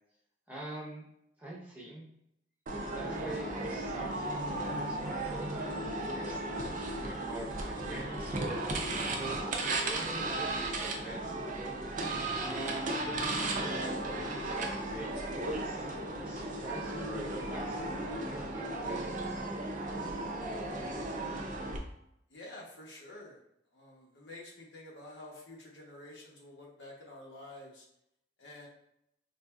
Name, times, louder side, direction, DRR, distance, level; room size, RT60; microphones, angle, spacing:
voice 1, 0.5-1.0 1.4-2.1 2.9-8.6 9.1-11.2 12.4-15.9 16.2-19.7, right 2 dB, 10° right, -5 dB, 0.8 m, -45 dB
sound 1, 2.7-21.8, right 2 dB, 45° right, 0.5 m, -35 dB
voice 2, 22.3-23.4 23.7-27.8 28.4-28.7, left 1 dB, 75° left, -2 dB, 0.9 m, -49 dB
4.2 x 2.6 x 2.3 m, 0.79 s
head